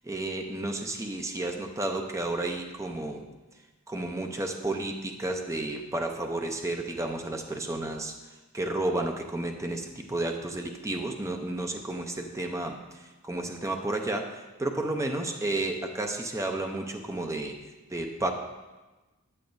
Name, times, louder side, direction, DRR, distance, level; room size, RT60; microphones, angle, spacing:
voice 1, 0.0-3.3 3.9-8.2 8.5-17.6 17.9-18.3, right 2 dB, 15° right, 3 dB, 0.5 m, -32 dB
8.6 x 8.2 x 2.6 m, 1.2 s
head